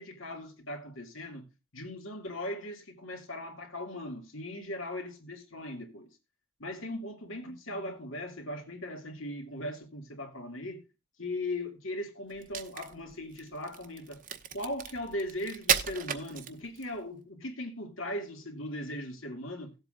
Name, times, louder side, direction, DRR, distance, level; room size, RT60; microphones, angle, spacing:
voice 1, 0.0-6.1 6.6-10.8 11.2-14.2 14.5-19.7, left 1 dB, 75° left, 2.4 m, -39 dB
Crack, 12.3-17.0, right 8 dB, 40° right, 0.8 m, -34 dB
17.5 x 7.9 x 2.5 m
head